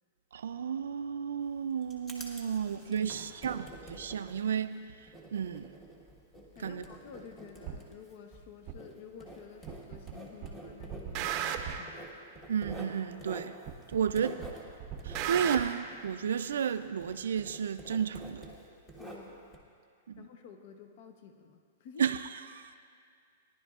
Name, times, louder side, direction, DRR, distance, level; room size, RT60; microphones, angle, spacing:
voice 1, 0.3-4.7 5.3-5.7 6.6-6.8 12.5-13.5 13.9-14.4 15.0-18.4 20.1-20.3 22.0-22.6, right 7 dB, 90° right, 10 dB, 0.4 m, -32 dB
Writing, 1.4-16.7 17.0-19.6, right 1 dB, 15° left, 1.4 m, -49 dB
voice 2, 3.0-3.4 6.5-12.0 19.0-19.4 20.2-22.2, left 7 dB, 50° left, 5 dB, 0.8 m, -51 dB
sound 1, 7.7-7.8 8.7-8.8 9.7-10.1 10.4-11.9 12.7-12.8 13.7-14.1 14.4-15.6, right 10 dB, 30° right, 0.7 m, -35 dB
18.5 x 11.0 x 2.4 m, 2.4 s
hypercardioid pair, 155°, 0 cm